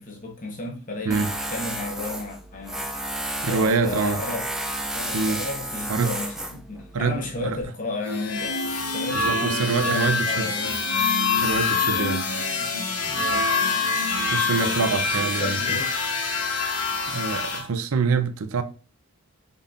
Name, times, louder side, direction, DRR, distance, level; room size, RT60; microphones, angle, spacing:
voice 1, 0.0-1.2 1.5-2.8 3.5-4.5 4.9-10.8 11.9-12.2 13.1-13.5 14.6-15.9, left 2 dB, 35° left, 1.0 m, -33 dB
Tools, 1.1-7.6, right 1 dB, ahead, 0.3 m, -32 dB
voice 2, 3.4-4.2 5.1-5.4 5.9-6.1 6.9-7.6 9.1-10.5 11.4-12.2 14.3-15.6 17.1-18.6, right 4 dB, 75° right, 0.5 m, -25 dB
sound 1, 8.0-17.6, left 4 dB, 85° left, 1.0 m, -25 dB
5.3 x 4.0 x 2.4 m
head